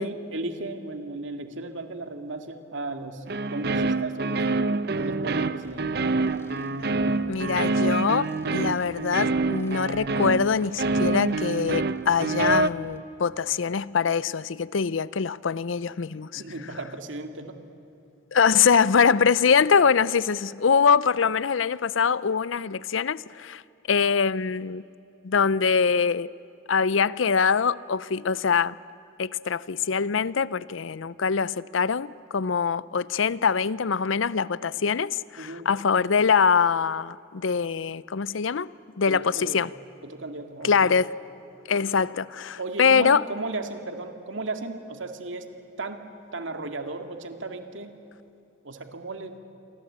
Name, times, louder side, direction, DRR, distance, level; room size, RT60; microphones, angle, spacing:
voice 1, 0.0-4.5 5.0-6.1 16.3-17.6 35.4-35.7 39.1-39.6 40.0-40.9 42.6-45.5 45.8-48.0 48.6-49.4, right 2 dB, 75° right, 2.1 m, -35 dB
sound 1, 3.3-12.7, right 3 dB, 55° right, 0.7 m, -26 dB
sound 2, 5.6-13.0, equal, 15° left, 1.6 m, -52 dB
voice 2, 7.3-16.4 18.3-23.6 23.9-24.8 25.2-26.3 26.7-28.8 29.2-38.7 39.0-39.7 40.6-41.1 41.7-43.2, left 6 dB, 80° left, 0.6 m, -23 dB
28.0 x 24.0 x 8.7 m
head